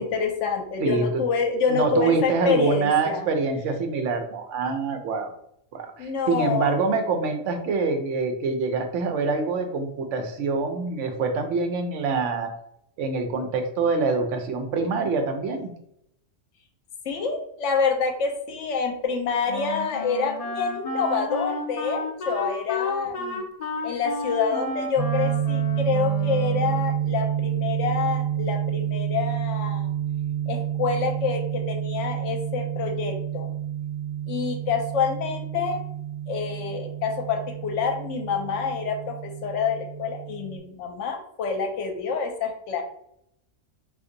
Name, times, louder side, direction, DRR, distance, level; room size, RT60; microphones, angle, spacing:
voice 1, 0.0-3.3 6.0-6.7 17.0-23.4 23.8-29.9 30.5-33.5 34.3-35.8 36.3-42.8, left 5 dB, 75° left, 4 dB, 0.9 m, -27 dB
voice 2, 1.7-5.3 5.7-12.5 13.0-15.7, right 4 dB, 75° right, 5 dB, 0.9 m, -25 dB
Wind instrument woodwind instrument, 19.5-26.9, left 2 dB, 90° left, 0.3 m, -32 dB
sound 1, 25.0-40.6, right 10 dB, 35° right, 1.3 m, -29 dB
2.6 x 2.5 x 3.8 m, 0.74 s
omnidirectional pair, 1.3 m